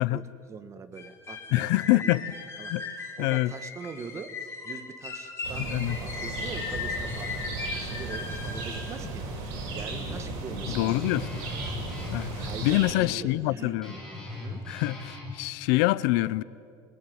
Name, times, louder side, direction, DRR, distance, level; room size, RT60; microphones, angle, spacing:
voice 1, 0.0-2.2 2.6-9.3 9.7-11.1 12.4-14.1 14.4-14.7, right 5 dB, 25° right, 10 dB, 1.5 m, -43 dB
sound 1, 1.0-8.8, left 4 dB, 25° left, 4.9 m, -37 dB
voice 2, 1.5-2.2 2.7-2.8 3.2-3.5 5.6-6.0 10.7-11.3 12.1-14.0 14.7-16.4, left 19 dB, 85° left, 18 dB, 0.8 m, -25 dB
sound 2, 5.4-12.9, right 2 dB, 75° right, 7.7 m, -35 dB
Guitar, 9.6-15.3, left 2 dB, 5° left, 6.9 m, -40 dB
26.0 x 20.5 x 9.5 m, 2.3 s
cardioid pair, 150°, 11 cm